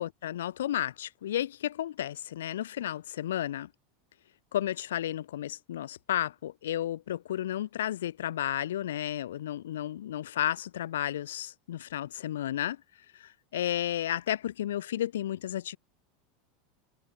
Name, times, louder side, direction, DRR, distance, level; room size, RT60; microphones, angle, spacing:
voice 1, 0.0-3.7 4.5-12.8 13.1-15.8, left 12 dB, 65° left, 0.6 m, -32 dB
figure-of-eight pair, 80°, 0 cm